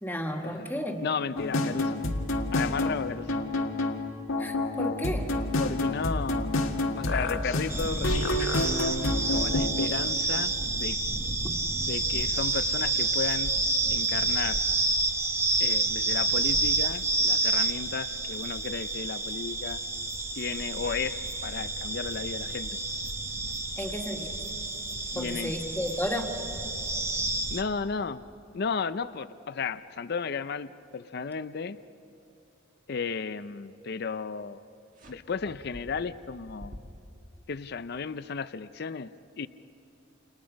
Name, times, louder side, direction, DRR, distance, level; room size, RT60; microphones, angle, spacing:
voice 1, 0.0-1.1 4.4-5.3 23.8-24.3 25.1-26.3, equal, 10° left, 2 dB, 1.8 m, -33 dB
voice 2, 1.0-2.0 2.5-3.4 5.6-8.1 9.0-11.0 11.8-13.6 13.9-14.6 15.6-19.8 20.4-22.8 25.1-25.5 27.5-28.2 28.5-31.8 32.9-34.7 35.1-36.8 37.5-39.1 39.4-39.5, left 5 dB, 50° left, 13 dB, 0.5 m, -34 dB
sound 1, 1.4-9.9, left 2 dB, 90° left, 1.7 m, -28 dB
sound 2, 7.7-27.6, right 2 dB, 15° right, 0.9 m, -29 dB
sound 3, 35.0-37.3, equal, 40° right, 1.9 m, -47 dB
30.0 x 29.0 x 5.2 m, 2.7 s
head